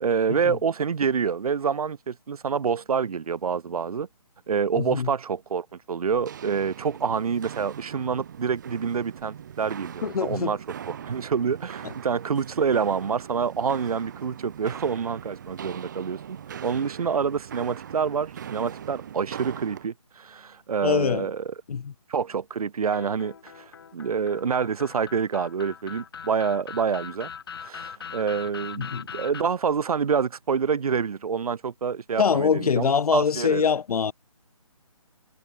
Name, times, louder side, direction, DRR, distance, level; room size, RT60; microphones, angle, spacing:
voice 1, 0.0-4.1 4.5-10.6 10.9-21.5 22.1-27.3 27.6-33.7, right 6 dB, 75° right, 0.6 m, -27 dB
voice 2, 4.8-5.1 10.0-10.5 20.8-21.3 21.7-21.9 28.8-29.0 32.2-34.1, left 6 dB, 80° left, 0.5 m, -23 dB
Walk footsteps, 6.1-19.9, right 9 dB, 30° right, 1.2 m, -41 dB
sound 1, 22.9-29.4, left 7 dB, 40° left, 0.7 m, -40 dB
hypercardioid pair, 165°, 19 cm